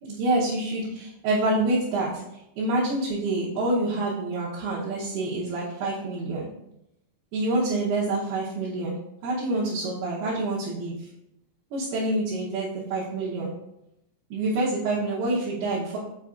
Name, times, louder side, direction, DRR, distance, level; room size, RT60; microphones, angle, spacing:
voice 1, 0.0-6.5 7.3-9.0 9.2-11.1 11.7-13.5 14.3-16.0, right 2 dB, 80° right, -8 dB, 3.1 m, -27 dB
7.2 x 5.2 x 2.5 m, 0.84 s
omnidirectional pair, 4.6 m